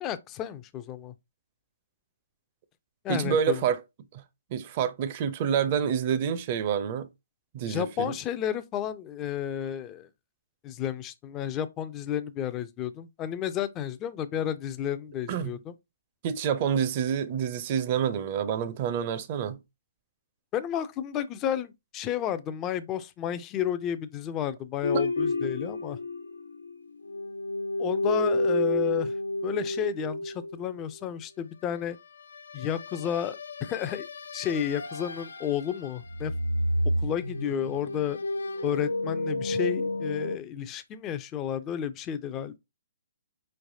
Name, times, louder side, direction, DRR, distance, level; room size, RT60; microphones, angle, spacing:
voice 1, 0.0-1.1 3.0-3.6 7.7-10.1 10.6-15.7 20.5-26.0 27.8-29.1 29.4-32.0 32.5-34.1 34.3-36.3 37.0-38.2 38.6-42.6, left 10 dB, 25° left, 0.4 m, -32 dB
voice 2, 3.1-3.8 4.1-4.2 4.5-7.1 7.5-8.1 15.3-15.5 16.2-19.6 24.9-25.0, right 8 dB, 40° right, 0.6 m, -28 dB
sound 1, 24.8-26.8 27.0-30.9 32.5-35.7 36.0-40.4, left 1 dB, 75° left, 0.4 m, -30 dB
4.5 x 3.2 x 2.7 m
figure-of-eight pair, 130°, 0 cm